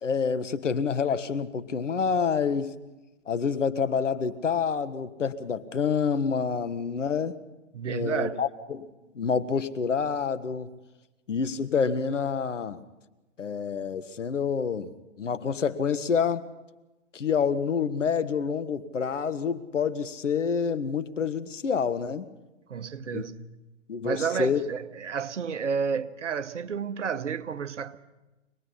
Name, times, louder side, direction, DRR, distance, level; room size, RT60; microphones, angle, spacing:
voice 1, 0.0-2.7 3.3-7.4 7.9-8.9 9.1-10.7 11.3-12.8 13.4-14.9 15.2-16.5 17.1-22.3 23.1-23.2 23.9-24.6, left 6 dB, 75° left, 1.5 m, -27 dB
voice 2, 7.7-8.5 22.7-23.4 24.0-28.0, right 6 dB, 70° right, 1.2 m, -31 dB
25.0 x 19.5 x 5.7 m
figure-of-eight pair, 120°, 37 cm